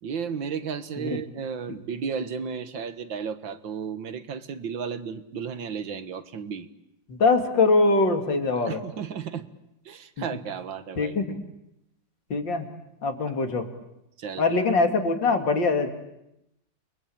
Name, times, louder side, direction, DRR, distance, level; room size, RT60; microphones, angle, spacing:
voice 1, 0.0-6.7 8.6-9.5 9.9-11.2 13.3-13.4 14.2-14.4, right 6 dB, 85° right, 11 dB, 2.2 m, -33 dB
voice 2, 7.1-8.8 10.2-10.3 11.0-11.4 12.3-12.7 13.0-13.7 14.4-15.9, left 3 dB, 75° left, 5 dB, 3.3 m, -23 dB
29.5 x 23.0 x 8.7 m, 0.85 s
omnidirectional pair, 2.0 m